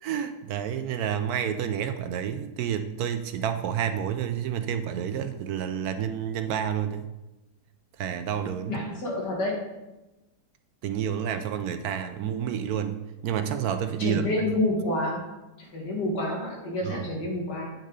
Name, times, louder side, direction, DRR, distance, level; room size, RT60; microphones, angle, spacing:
voice 1, 0.0-7.1 8.0-8.8 10.8-13.0 13.2-14.3 16.8-17.2, right 9 dB, 70° right, 9 dB, 1.0 m, -29 dB
voice 2, 8.7-9.6 14.0-15.3 15.6-17.8, left 1 dB, 80° left, -1 dB, 2.5 m, -28 dB
8.9 x 6.2 x 4.0 m, 1.0 s
omnidirectional pair, 1.8 m